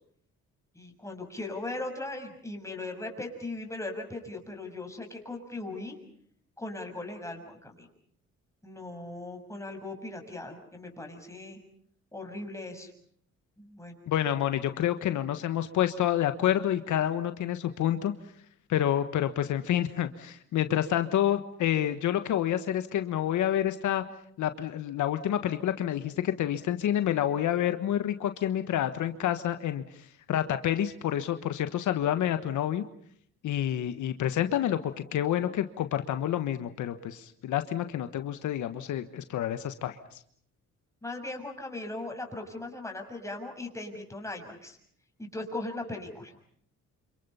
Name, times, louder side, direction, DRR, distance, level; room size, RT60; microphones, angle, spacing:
voice 1, 0.7-6.0 6.6-7.9 8.6-11.6 12.1-12.9 13.6-13.9 41.0-44.8 45.2-46.4, left 2 dB, 10° left, 3 dB, 6.5 m, -38 dB
voice 2, 14.1-18.1 18.7-24.0 24.4-32.8 33.4-40.2, left 11 dB, 75° left, 9 dB, 1.4 m, -28 dB
28.5 x 26.5 x 5.7 m, 0.63 s
cardioid pair, 90°, 30 cm